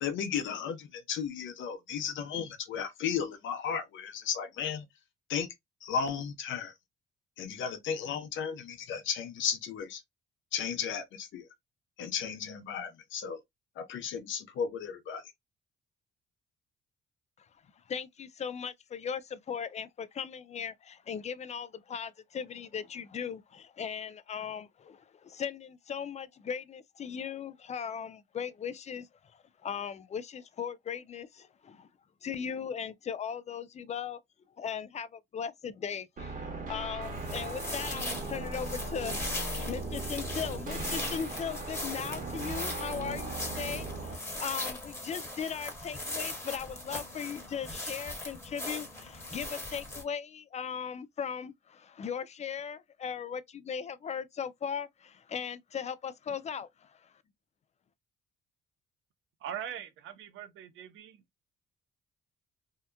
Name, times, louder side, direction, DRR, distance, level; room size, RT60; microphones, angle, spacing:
voice 1, 0.0-4.8 5.3-5.5 5.8-6.7 7.4-10.0 10.5-11.5 12.0-13.4 13.8-15.2, left 7 dB, 75° left, 0.7 m, -34 dB
voice 2, 17.9-29.1 29.6-31.9 32.2-34.2 34.6-36.3 36.7-39.2 39.5-57.0, left 7 dB, 35° left, 0.4 m, -38 dB
sound 1, 36.2-44.2, right 2 dB, 45° right, 1.1 m, -38 dB
sound 2, 37.0-50.0, left 1 dB, 15° left, 1.2 m, -39 dB
voice 3, 59.4-61.2, right 9 dB, 80° right, 0.6 m, -41 dB
2.8 x 2.1 x 2.2 m
cardioid pair, 90°, 20 cm